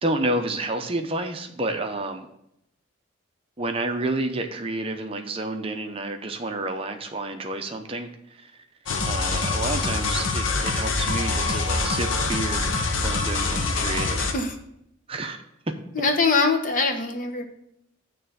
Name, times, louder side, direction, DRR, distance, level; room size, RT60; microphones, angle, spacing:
voice 1, 0.0-2.3 3.6-8.6 9.0-12.7 13.0-14.3 15.1-15.4, right 2 dB, 30° right, 5 dB, 0.6 m, -30 dB
sound 1, 8.9-14.3, left 3 dB, 75° left, 0.8 m, -25 dB
voice 2, 15.9-17.5, left 4 dB, 40° left, 5 dB, 0.9 m, -22 dB
9.1 x 3.3 x 6.6 m, 0.78 s
head